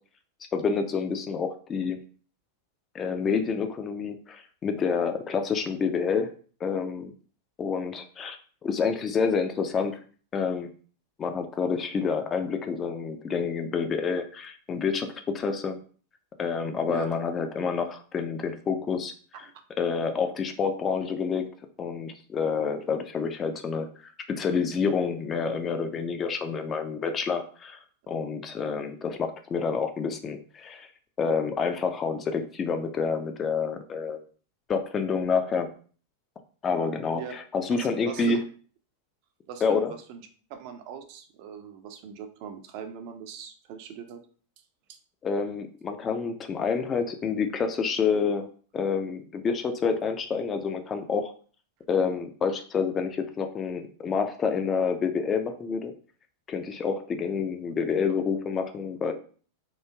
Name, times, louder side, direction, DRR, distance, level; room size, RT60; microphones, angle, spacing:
voice 1, 0.5-2.0 2.9-6.3 6.6-7.1 7.6-8.4 8.6-10.0 10.3-10.7 11.2-15.8 16.4-19.1 19.8-21.5 21.8-27.8 28.1-30.9 31.2-34.2 34.7-35.7 36.6-38.4 39.6-39.9 45.2-51.3 51.9-55.9 56.5-59.1, left 5 dB, 25° left, 7 dB, 0.3 m, -28 dB
voice 2, 37.8-38.5 39.5-44.2 44.9-45.0, right 8 dB, 45° right, 6 dB, 0.4 m, -41 dB
3.0 x 2.3 x 2.2 m, 0.42 s
figure-of-eight pair, 90°, 0 cm